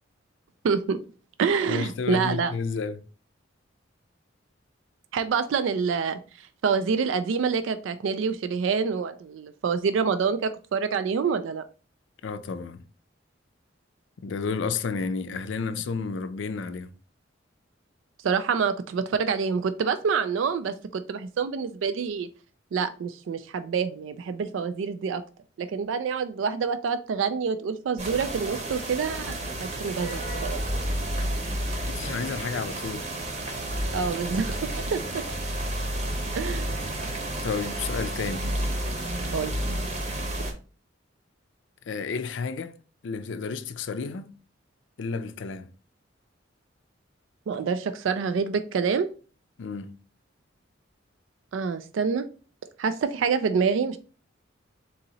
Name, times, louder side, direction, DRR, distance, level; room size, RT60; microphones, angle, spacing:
voice 1, 0.6-1.0 1.4-2.5 5.1-11.6 18.2-22.3 22.7-25.2 25.6-29.3 29.6-30.6 33.9-35.2 36.3-36.8 39.3-39.5 47.5-49.1 51.5-52.3 52.8-54.0, right 5 dB, 80° right, 0.3 m, -27 dB
voice 2, 1.7-3.0 12.2-12.9 14.2-16.9 31.5-33.1 37.4-38.5 41.9-42.8 43.0-44.3 45.0-45.7 49.6-49.9, left 5 dB, 75° left, 0.4 m, -31 dB
sound 1, 28.0-40.5, right 1 dB, 35° right, 0.8 m, -31 dB
4.0 x 2.8 x 3.9 m
head